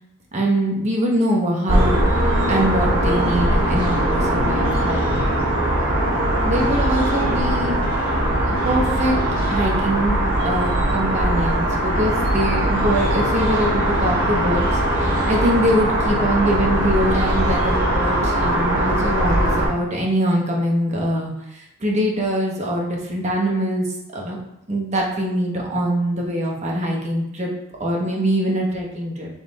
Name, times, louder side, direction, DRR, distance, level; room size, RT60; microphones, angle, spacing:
voice 1, 0.3-2.1 2.5-5.3 6.4-7.8 8.5-9.2 9.5-10.2 10.4-23.9 24.1-24.4 24.7-27.5 27.8-29.3, equal, 30° right, -1 dB, 0.8 m, -23 dB
sound 1, 1.7-19.7, right 1 dB, 55° right, 1.3 m, -20 dB
3.6 x 3.2 x 4.0 m, 0.83 s
head